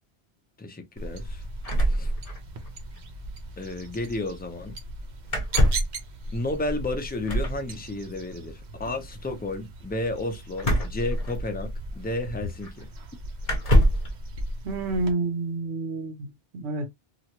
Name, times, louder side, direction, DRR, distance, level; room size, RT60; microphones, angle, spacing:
voice 1, 0.6-1.4 1.9-2.1 3.6-4.8 6.3-12.9, left 2 dB, 10° left, 0.4 m, -32 dB
sound 1, 1.0-15.1, right 1 dB, 50° right, 0.7 m, -38 dB
sound 2, 1.6-2.7 3.0-3.1 3.2-3.4 5.3-6.0 7.3-7.6 10.6-11.8 12.6-12.7 13.4-14.1, equal, 40° left, 0.8 m, -23 dB
voice 2, 14.6-16.9, right 3 dB, 85° right, 1.1 m, -29 dB
2.9 x 2.3 x 2.8 m
omnidirectional pair, 1.1 m